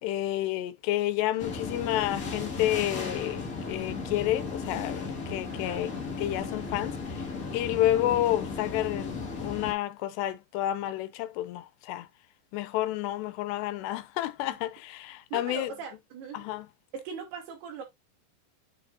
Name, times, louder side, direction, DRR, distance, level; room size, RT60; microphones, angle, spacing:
voice 1, 0.0-5.9 6.2-7.3 7.5-12.1 12.5-15.7 16.3-16.7, left 13 dB, 90° left, 2.9 m, -30 dB
sound 1, 1.4-9.7, left 4 dB, 45° left, 1.1 m, -35 dB
voice 2, 5.5-5.9 15.3-16.4 16.9-17.8, right 5 dB, 70° right, 4.4 m, -40 dB
9.5 x 6.1 x 2.5 m
omnidirectional pair, 4.9 m